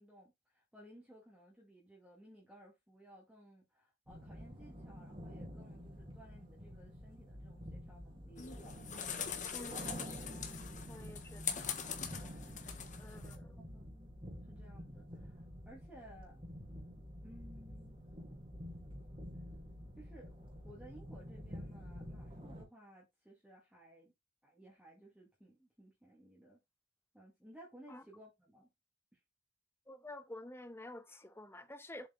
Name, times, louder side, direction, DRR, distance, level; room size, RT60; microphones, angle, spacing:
voice 1, 0.0-8.5 9.0-9.3 10.7-11.0 12.8-13.2 13.6-14.2 14.4-16.4 17.2-18.0 20.0-20.3 20.6-24.1 24.4-26.6 27.1-28.7 29.1-29.2, right 1 dB, 5° right, 2.3 m, -59 dB
sound 1, 4.1-22.6, equal, 30° right, 2.7 m, -49 dB
sound 2, 8.4-13.4, left 8 dB, 45° left, 1.4 m, -43 dB
voice 2, 9.5-10.0 10.9-11.4 13.0-13.6 27.9-28.0 29.9-32.1, left 1 dB, 15° left, 0.9 m, -50 dB
7.5 x 4.8 x 3.8 m
head